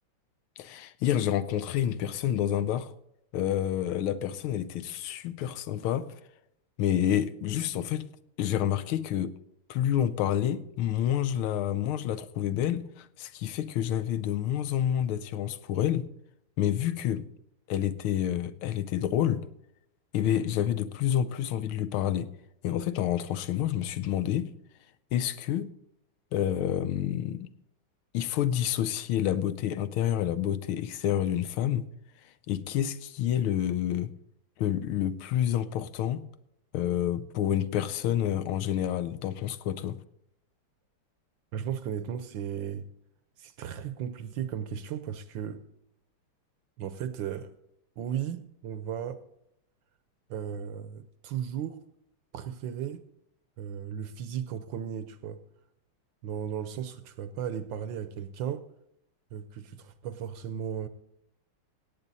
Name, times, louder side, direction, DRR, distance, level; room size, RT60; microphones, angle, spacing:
voice 1, 0.6-2.9 3.3-6.1 6.8-8.1 8.4-9.4 9.7-16.1 16.6-17.3 17.7-19.4 20.1-22.3 22.6-24.5 25.1-25.7 26.3-27.5 28.1-31.9 32.5-34.1 34.6-36.3 36.7-40.0, left 11 dB, 80° left, 1.5 m, -28 dB
voice 2, 41.5-42.9 43.4-45.6 46.8-47.5 48.0-49.2 50.3-51.8 52.3-53.0 53.6-55.4 56.2-58.6 59.3-60.9, right 9 dB, 70° right, 1.3 m, -35 dB
17.0 x 8.6 x 4.1 m
omnidirectional pair, 2.4 m